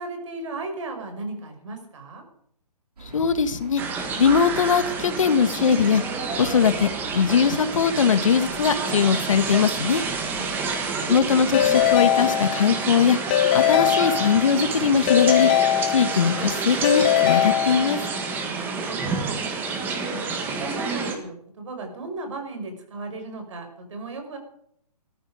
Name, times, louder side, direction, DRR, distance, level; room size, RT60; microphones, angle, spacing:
voice 1, 0.0-2.2 10.2-10.6 18.5-19.4 20.0-24.4, right 3 dB, 50° right, 5 dB, 5.8 m, -36 dB
sound 1, 3.0-11.9, right 3 dB, 80° right, 6.3 m, -44 dB
voice 2, 3.1-3.8 4.2-6.0 6.4-10.0 11.1-13.2 13.5-15.5 15.9-18.0, left 6 dB, 55° left, 11 dB, 1.7 m, -21 dB
sound 2, 3.8-21.2, right 4 dB, 10° right, 1.5 m, -29 dB
Keyboard (musical) / Ringtone, 11.5-12.9 13.3-14.6 15.1-16.4 16.8-18.2, left 12 dB, 15° left, 0.5 m, -21 dB
17.5 x 14.0 x 5.1 m, 0.68 s
hypercardioid pair, 165°, 20 cm